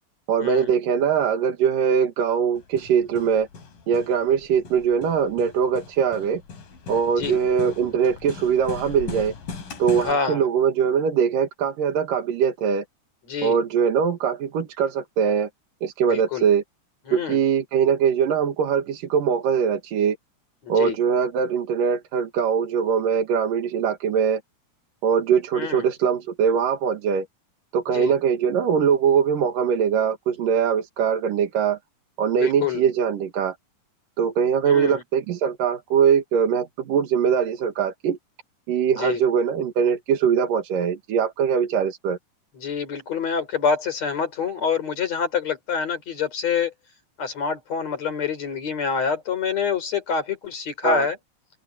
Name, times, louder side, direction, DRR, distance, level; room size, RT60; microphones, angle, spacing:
voice 1, 0.3-3.5 3.9-6.4 6.9-9.3 9.8-12.9 13.4-15.5 15.8-16.6 17.1-20.2 20.7-24.4 25.0-27.3 27.7-31.8 32.2-33.6 34.2-38.2 38.7-42.2 50.8-51.1, right 7 dB, 80° right, 3.5 m, -22 dB
Hammer, 2.6-10.1, left 5 dB, 85° left, 5.5 m, -39 dB
voice 2, 10.0-10.4 13.3-13.6 16.1-16.4 17.1-17.4 20.7-20.9 25.6-25.8 27.9-28.1 32.4-32.8 34.7-35.0 39.0-39.2 42.6-46.7 47.2-51.2, left 6 dB, 50° left, 5.1 m, -26 dB
open air
omnidirectional pair, 3.8 m